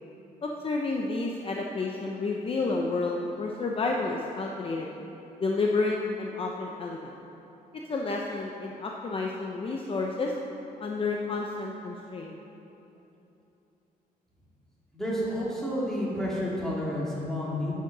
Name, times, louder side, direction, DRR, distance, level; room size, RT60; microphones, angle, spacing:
voice 1, 0.4-4.9 5.4-7.1 7.9-10.3 10.8-12.4, left 3 dB, 35° left, 0 dB, 0.7 m, -30 dB
voice 2, 14.9-17.7, equal, 5° left, -7 dB, 2.7 m, -30 dB
10.5 x 7.4 x 6.0 m, 2.9 s
cardioid pair, 130°, 16 cm